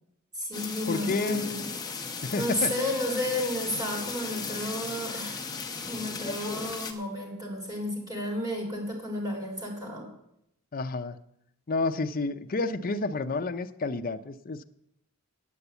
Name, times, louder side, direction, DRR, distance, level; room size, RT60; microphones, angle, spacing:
voice 1, 0.3-1.6 2.4-5.4 5.9-10.1, left 1 dB, 20° right, -1 dB, 3.8 m, -32 dB
sound 1, 0.5-6.9, left 4 dB, 20° left, 1.0 m, -36 dB
voice 2, 0.9-1.4 2.2-2.7 10.7-11.2 11.7-14.6, left 3 dB, 40° left, 8 dB, 0.5 m, -30 dB
8.9 x 8.4 x 8.1 m, 0.77 s
head